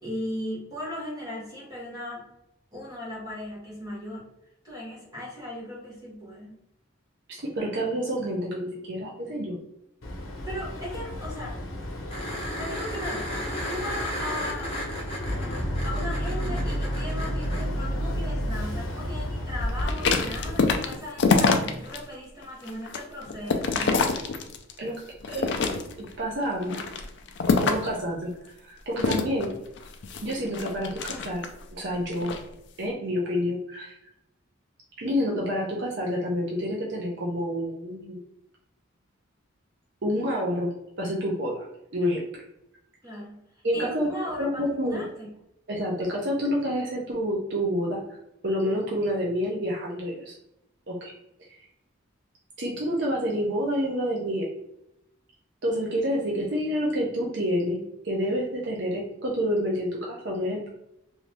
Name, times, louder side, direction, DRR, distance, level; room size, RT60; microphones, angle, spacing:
voice 1, 0.0-2.3 2.7-4.3 4.6-6.6 10.4-11.6 12.5-14.8 15.8-24.1 43.0-43.4 43.7-45.3, left 1 dB, 20° right, -6 dB, 1.2 m, -37 dB
voice 2, 7.3-9.6 24.8-25.0 25.3-26.8 27.6-29.5 30.2-31.4 31.7-32.4 32.8-34.0 35.0-38.2 40.0-40.7 41.0-41.7 41.9-42.4 43.6-44.1 44.4-45.0 45.7-48.0 48.4-50.3 50.9-51.1 52.6-54.5 55.6-60.6, equal, 55° right, -3 dB, 0.6 m, -28 dB
Boat Water vehicle, 10.0-20.8, equal, 85° left, 0.8 m, -31 dB
sound 1, 12.1-17.6 20.3-20.4, equal, 30° left, 0.9 m, -35 dB
sound 2, 19.8-22.0 22.4-24.8 25.2-26.1 26.6-28.0 29.0-31.6 32.1-32.4, left 4 dB, 60° left, 0.4 m, -25 dB
2.7 x 2.7 x 3.3 m, 0.83 s
head